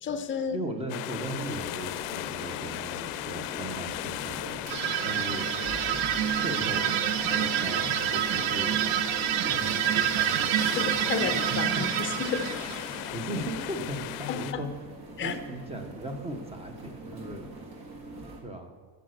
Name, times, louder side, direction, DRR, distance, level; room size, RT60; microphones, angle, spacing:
voice 1, 0.0-0.6 10.8-12.5 14.3-14.6 15.2-15.4, left 6 dB, 25° left, 9 dB, 0.6 m, -31 dB
voice 2, 0.5-5.5 6.4-6.9 7.2-8.8 9.4-10.8 13.1-14.7 15.2-17.5 18.4-18.7, right 1 dB, 15° right, 5 dB, 0.9 m, -38 dB
sound 1, 0.9-14.5, left 16 dB, 75° left, 0.5 m, -37 dB
sound 2, 1.1-18.4, right 2 dB, 50° right, 1.9 m, -44 dB
sound 3, 4.7-13.1, right 12 dB, 75° right, 0.6 m, -27 dB
8.4 x 6.8 x 6.5 m, 1.4 s
cardioid pair, 150°, 48 cm